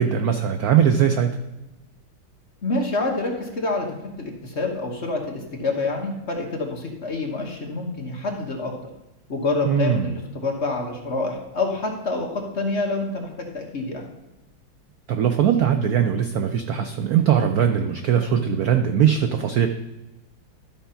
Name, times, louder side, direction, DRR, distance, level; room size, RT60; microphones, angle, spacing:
voice 1, 0.0-1.4 9.7-10.2 15.1-19.7, right 8 dB, 80° right, 7 dB, 0.8 m, -20 dB
voice 2, 2.6-3.9 4.2-8.7 9.3-14.0, left 3 dB, 40° left, 1 dB, 1.2 m, -27 dB
12.5 x 4.4 x 5.6 m, 0.96 s
omnidirectional pair, 2.2 m